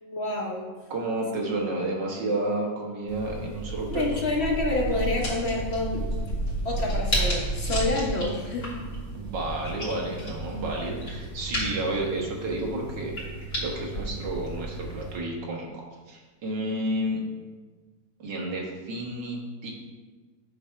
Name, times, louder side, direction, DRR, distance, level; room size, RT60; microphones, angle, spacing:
voice 1, 0.0-0.7 3.9-6.3 6.6-8.9, left 2 dB, 45° left, -1 dB, 1.0 m, -28 dB
voice 2, 0.9-4.0 9.1-13.2 13.6-17.2 18.2-19.7, right 1 dB, 75° right, -1 dB, 1.9 m, -31 dB
sound 1, 3.1-15.2, right 1 dB, 60° left, 2.9 m, -32 dB
8.0 x 3.4 x 5.7 m, 1.3 s
omnidirectional pair, 2.0 m